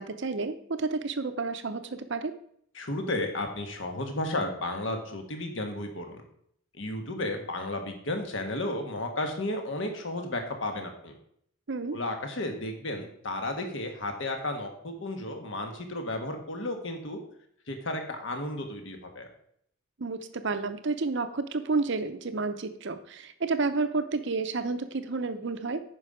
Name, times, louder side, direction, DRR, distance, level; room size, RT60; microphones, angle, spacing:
voice 1, 0.0-2.3 11.7-12.0 20.0-25.8, right 3 dB, 55° right, 10 dB, 0.7 m, -30 dB
voice 2, 2.7-6.2 6.7-11.2 11.9-17.2 17.7-19.3, left 1 dB, 60° left, 4 dB, 1.4 m, -33 dB
9.3 x 5.6 x 4.9 m, 0.69 s
head